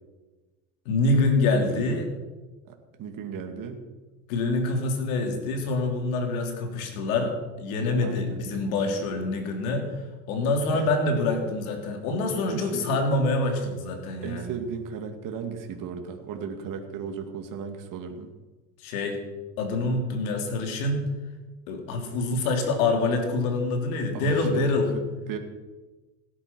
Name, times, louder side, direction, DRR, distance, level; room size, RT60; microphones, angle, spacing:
voice 1, 0.9-2.1 4.3-9.9 10.3-14.5 18.8-19.2 19.6-21.0 21.7-24.9, left 2 dB, 80° left, 3 dB, 3.5 m, -26 dB
voice 2, 2.7-3.8 8.0-8.4 10.7-10.9 12.5-12.9 14.2-18.3 24.1-24.7 24.9-25.4, right 6 dB, 50° right, 4 dB, 2.2 m, -35 dB
17.0 x 10.0 x 6.1 m, 1.2 s
supercardioid pair, 90°, 41 cm